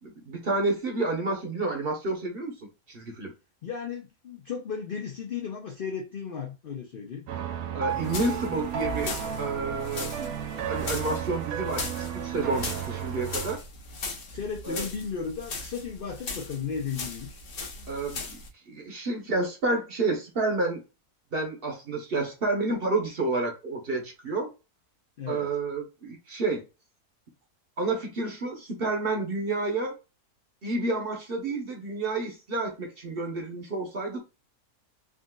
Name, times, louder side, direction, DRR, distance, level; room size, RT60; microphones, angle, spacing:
voice 1, 0.0-3.3 7.7-10.3 10.7-13.6 14.6-14.9 17.9-18.4 18.7-20.8 21.3-24.5 25.3-26.6 27.8-30.0 30.6-34.2, right 2 dB, 45° right, 0.9 m, -30 dB
voice 2, 3.6-7.3 14.3-17.4 25.2-25.5, left 6 dB, 80° left, 0.4 m, -35 dB
sound 1, 7.3-13.6, right 8 dB, 70° right, 1.0 m, -33 dB
sound 2, 7.9-18.5, left 3 dB, 50° left, 0.7 m, -38 dB
3.6 x 2.5 x 2.2 m
omnidirectional pair, 1.6 m